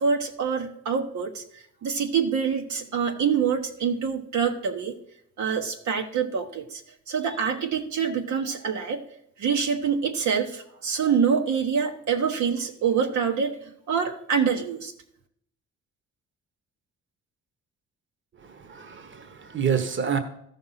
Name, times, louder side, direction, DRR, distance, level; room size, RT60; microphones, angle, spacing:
voice 1, 0.0-1.4 1.8-4.9 5.4-6.8 7.1-9.0 9.4-13.5 13.9-14.9, right 6 dB, 70° right, 3 dB, 1.3 m, -25 dB
voice 2, 18.5-20.2, right 7 dB, 40° right, 9 dB, 1.2 m, -27 dB
13.5 x 5.6 x 5.7 m, 0.72 s
cardioid pair, 90°, 30 cm